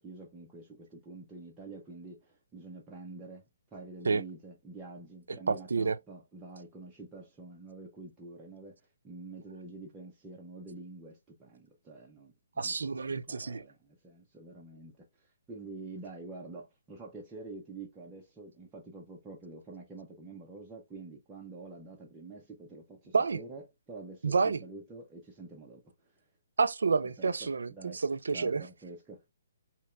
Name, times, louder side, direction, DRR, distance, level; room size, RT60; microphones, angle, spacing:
voice 1, 0.0-3.4 3.7-26.3 27.2-28.0 28.3-29.3, right 3 dB, 10° right, 0.5 m, -47 dB
voice 2, 5.5-6.0 12.6-13.6 23.1-23.4 24.2-24.6 26.6-28.6, right 4 dB, 90° right, 0.4 m, -29 dB
4.3 x 2.9 x 2.3 m
hypercardioid pair, 165°, 0 cm